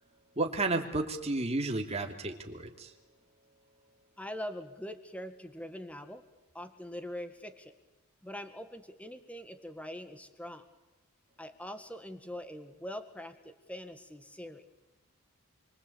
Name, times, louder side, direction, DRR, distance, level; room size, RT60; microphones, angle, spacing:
voice 1, 0.4-2.9, right 2 dB, 30° right, 3 dB, 2.8 m, -32 dB
voice 2, 4.2-6.2 6.5-7.7 8.2-10.6 11.4-14.7, left 1 dB, 5° left, 9 dB, 1.7 m, -43 dB
27.0 x 24.5 x 8.7 m, 1.0 s
head